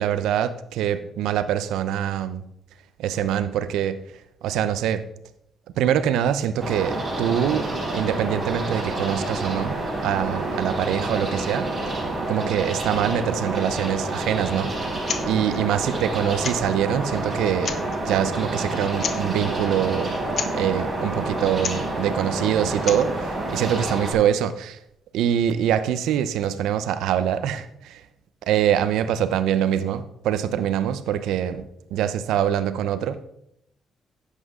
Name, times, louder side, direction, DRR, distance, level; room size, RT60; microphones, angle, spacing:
voice 1, 0.0-2.4 3.0-4.0 4.4-5.0 5.8-7.6 7.9-11.7 12.3-14.7 15.3-17.7 18.0-20.1 20.5-24.8 25.1-28.0 28.4-33.2, right 10 dB, 85° right, 12 dB, 0.7 m, -24 dB
sound 1, 6.6-24.1, right 2 dB, 30° right, 4.5 m, -28 dB
sound 2, 15.0-15.3 15.5-15.6 16.4-16.8 17.5-18.0 19.0-19.3 20.3-20.6 21.5-21.9 22.7-23.1, left 6 dB, 55° left, 0.9 m, -30 dB
11.0 x 8.3 x 3.8 m, 0.75 s
cardioid pair, 90°, 0 cm